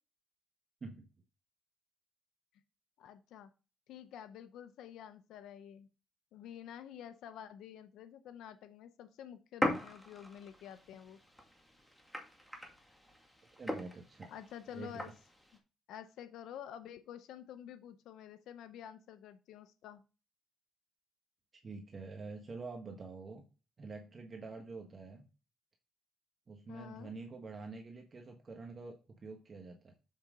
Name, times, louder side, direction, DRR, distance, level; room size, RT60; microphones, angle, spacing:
voice 1, 3.0-3.5 3.9-5.9 6.3-11.2 14.3-15.1 15.9-20.0 26.7-27.1, left 9 dB, 85° left, 11 dB, 0.6 m, -49 dB
sound 1, 9.6-15.6, left 1 dB, 5° left, 2.1 m, -41 dB
voice 2, 13.6-14.3 14.7-15.0 21.6-23.4 23.8-25.2 26.5-29.9, right 3 dB, 40° right, 2 dB, 1.5 m, -47 dB
7.6 x 5.7 x 3.8 m, 0.32 s
cardioid pair, 90°, 0 cm